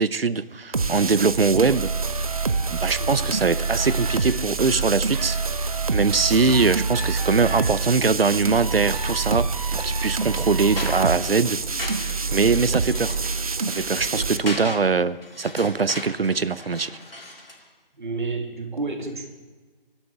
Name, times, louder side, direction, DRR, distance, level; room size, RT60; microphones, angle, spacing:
voice 1, 0.0-1.9 2.7-5.4 5.9-11.6 12.3-13.2 13.6-17.0, right 4 dB, 80° right, 17 dB, 0.6 m, -22 dB
sound 1, 0.7-14.4, right 4 dB, 40° right, 0.5 m, -26 dB
sound 2, 3.6-11.1, right 1 dB, 10° right, 1.1 m, -41 dB
sound 3, 9.6-17.7, left 2 dB, 75° left, 2.5 m, -38 dB
voice 2, 18.0-19.3, right 3 dB, 55° right, 4 dB, 2.1 m, -31 dB
23.0 x 11.5 x 3.6 m, 1.3 s
figure-of-eight pair, 150°, 29 cm